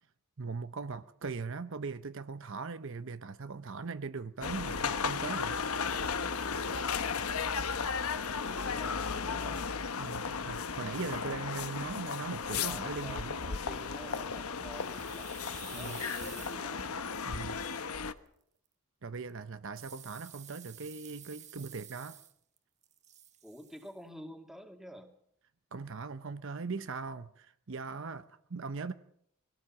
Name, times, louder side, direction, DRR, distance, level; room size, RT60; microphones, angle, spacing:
voice 1, 0.4-5.6 10.0-13.4 15.7-16.0 17.2-17.7 19.0-22.2 25.7-28.9, right 4 dB, 60° right, 0.8 m, -40 dB
sound 1, 4.4-18.1, left 5 dB, 80° left, 1.1 m, -35 dB
voice 2, 8.2-9.8 12.6-17.0 23.4-25.1, equal, ahead, 2.3 m, -49 dB
sound 2, 14.7-17.8 19.8-22.6 22.8-23.9, right 11 dB, 30° right, 1.2 m, -51 dB
23.0 x 17.5 x 7.3 m
head